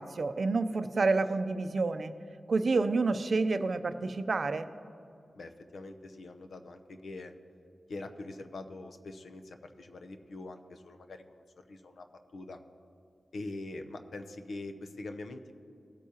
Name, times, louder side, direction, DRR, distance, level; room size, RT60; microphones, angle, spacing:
voice 1, 0.0-2.1 2.5-4.7, right 3 dB, 50° right, 10 dB, 0.5 m, -29 dB
voice 2, 5.3-7.3 7.9-12.6 13.3-15.5, left 2 dB, 80° left, 7 dB, 0.7 m, -44 dB
18.5 x 8.4 x 2.9 m, 2.5 s
wide cardioid pair, 135°, 0 cm